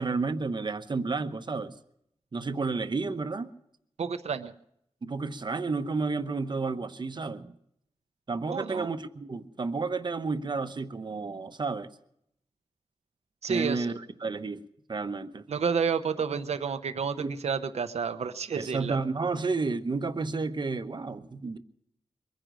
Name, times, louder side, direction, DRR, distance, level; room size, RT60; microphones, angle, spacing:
voice 1, 0.0-1.7 2.3-3.5 5.0-7.5 8.3-11.9 13.5-13.9 14.2-14.6 14.9-15.4 17.2-17.4 18.6-21.6, right 4 dB, 45° right, 9 dB, 0.9 m, -31 dB
voice 2, 4.0-4.5 8.5-8.9 13.4-14.0 15.5-19.0, right 6 dB, 80° right, 9 dB, 0.8 m, -30 dB
23.0 x 10.0 x 6.2 m, 0.74 s
wide cardioid pair, 125°, 11 cm